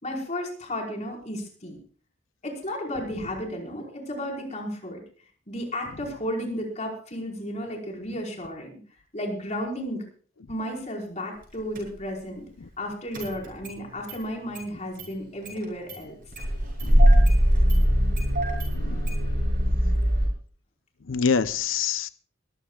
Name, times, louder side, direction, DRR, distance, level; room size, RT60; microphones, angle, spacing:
voice 1, 0.0-1.8 2.4-5.0 5.5-8.7 9.1-10.0 10.5-12.4 12.8-16.1, equal, 35° left, 0 dB, 4.8 m, -33 dB
Engine starting, 11.7-11.8 13.1-13.8 14.1-14.2 14.5-14.7 15.0-15.1 15.4-16.0 16.3-20.3, equal, 45° right, 7.2 m, -21 dB
voice 2, 16.8-17.2 18.7-19.1 21.1-22.1, left 6 dB, 85° left, 13 dB, 0.7 m, -26 dB
23.0 x 15.0 x 2.4 m, 0.43 s
head